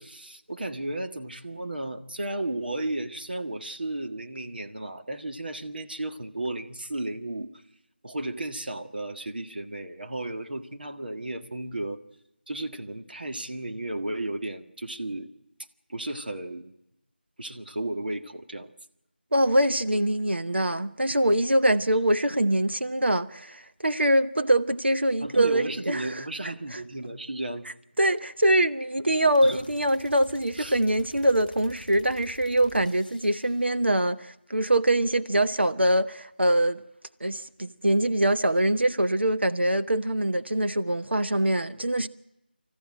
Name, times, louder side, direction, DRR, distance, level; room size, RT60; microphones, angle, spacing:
voice 1, 0.0-7.5 8.0-12.0 12.5-15.3 15.9-16.8 17.4-18.7 25.2-27.7 29.4-29.6 30.6-30.8, right 1 dB, 60° right, 1.7 m, -34 dB
voice 2, 19.3-26.2 26.7-26.8 28.0-36.8 37.2-42.1, right 1 dB, 80° right, 1.0 m, -24 dB
sound 1, 29.3-33.8, left 2 dB, 5° left, 2.7 m, -50 dB
28.5 x 14.0 x 8.9 m
figure-of-eight pair, 170°, 6 cm